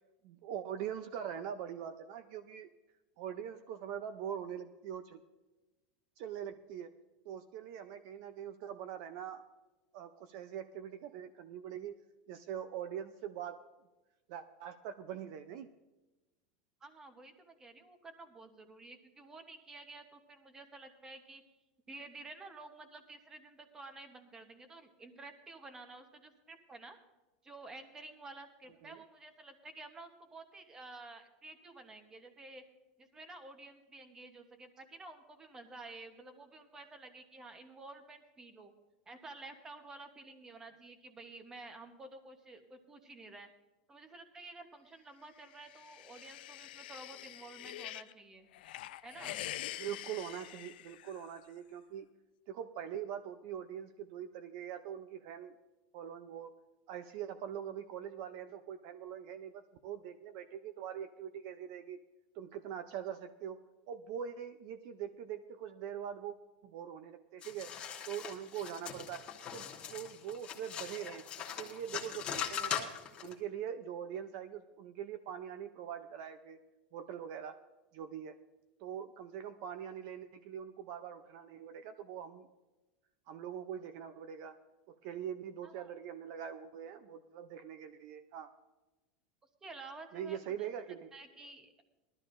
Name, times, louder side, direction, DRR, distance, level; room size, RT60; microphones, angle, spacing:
voice 1, 0.2-2.7 3.2-5.2 6.2-6.9 7.3-9.4 9.9-12.0 12.3-13.6 14.3-15.7 28.8-29.0 49.8-52.1 52.5-55.5 55.9-56.5 56.9-62.0 62.3-63.6 63.9-66.4 66.6-67.7 68.1-69.3 69.5-71.3 71.6-72.9 73.2-76.6 76.9-77.6 77.9-78.4 78.8-82.5 83.3-84.6 84.9-88.5 90.1-91.1, right 9 dB, 45° right, 10 dB, 0.5 m, -43 dB
voice 2, 16.8-21.4 21.9-27.0 27.4-32.6 33.0-38.7 39.1-43.5 43.9-48.5 49.0-49.4 85.6-85.9 89.6-90.7 91.1-91.8, right 2 dB, 10° right, 7 dB, 0.9 m, -51 dB
sound 1, 45.4-48.1 48.5-51.4, left 15 dB, 80° left, 0.4 m, -45 dB
sound 2, 67.4-73.3, left 8 dB, 20° left, 1.2 m, -41 dB
20.0 x 12.5 x 2.6 m, 1.1 s
supercardioid pair, 175°, 5 cm